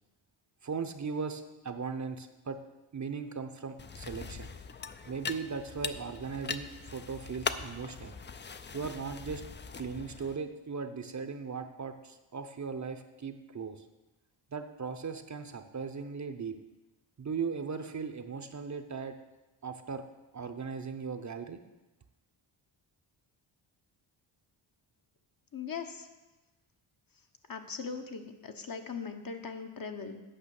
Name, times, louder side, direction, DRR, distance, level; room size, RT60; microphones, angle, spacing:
voice 1, 0.6-2.6 2.9-4.5 5.1-8.1 8.7-9.4 9.8-13.8 14.5-16.5 17.2-19.1 19.6-20.0 20.3-21.6, right 5 dB, 35° right, 7 dB, 0.7 m, -38 dB
sound 1, 3.8-10.3, left 5 dB, 25° left, 0.4 m, -40 dB
voice 2, 25.5-26.1 27.5-30.2, left 5 dB, 45° left, 5 dB, 1.0 m, -40 dB
8.9 x 5.7 x 7.0 m, 1.1 s
cardioid pair, 80°, 48 cm